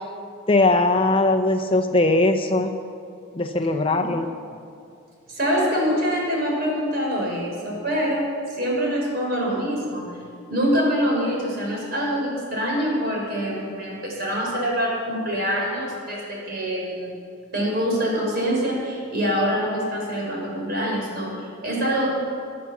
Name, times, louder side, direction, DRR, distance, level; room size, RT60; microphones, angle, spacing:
voice 1, 0.5-2.7 3.3-4.3, left 2 dB, 25° left, 5 dB, 0.7 m, -20 dB
voice 2, 5.3-10.2 10.5-17.2 17.5-22.1, equal, 50° right, -2 dB, 5.3 m, -25 dB
23.0 x 8.7 x 7.1 m, 2.4 s
head